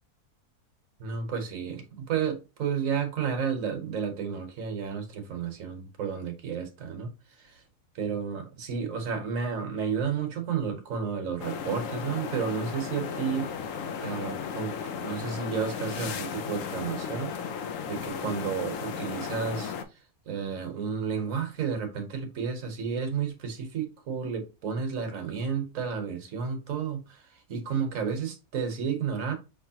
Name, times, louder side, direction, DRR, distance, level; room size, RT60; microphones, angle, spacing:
voice 1, 1.0-7.1 7.4-7.6 7.9-13.5 14.0-14.7 15.0-17.3 17.9-19.7 20.3-29.3, right 6 dB, 65° right, 1.4 m, -32 dB
sound 1, 11.4-19.8, left 7 dB, 65° left, 0.9 m, -35 dB
5.5 x 3.2 x 2.8 m
omnidirectional pair, 1.6 m